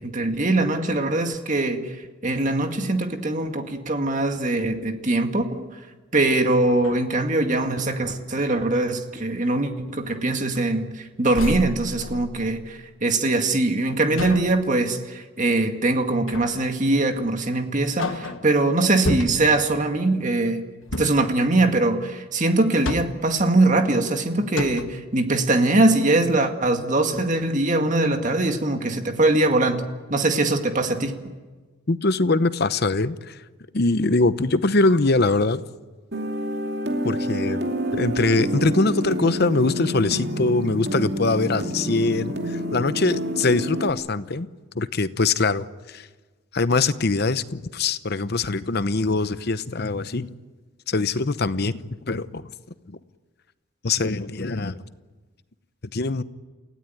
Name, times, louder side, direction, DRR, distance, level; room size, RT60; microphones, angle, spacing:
voice 1, 0.0-1.8 2.2-5.7 6.1-20.6 21.0-29.8 30.1-31.2, right 2 dB, 35° right, 5 dB, 2.0 m, -22 dB
sound 1, 6.1-6.2 6.7-7.9 8.5-8.9 9.4-9.6 10.1-11.0 11.3-12.9 14.2-14.7 16.3-16.7 17.2-17.3 17.8-18.6 19.0-19.7 20.8-21.3 22.5-23.4 24.1-24.2 24.5-25.1, left 2 dB, 65° left, 1.4 m, -32 dB
voice 2, 31.9-33.4 33.7-35.6 37.0-37.6 37.9-44.5 44.7-46.1 46.5-50.3 50.9-51.8 52.1-52.5 52.9-53.0 53.8-54.8 55.9-56.2, left 3 dB, 50° left, 13 dB, 0.8 m, -22 dB
sound 2, 36.1-43.9, equal, 50° right, 2.6 m, -28 dB
29.0 x 16.5 x 9.4 m, 1.3 s
head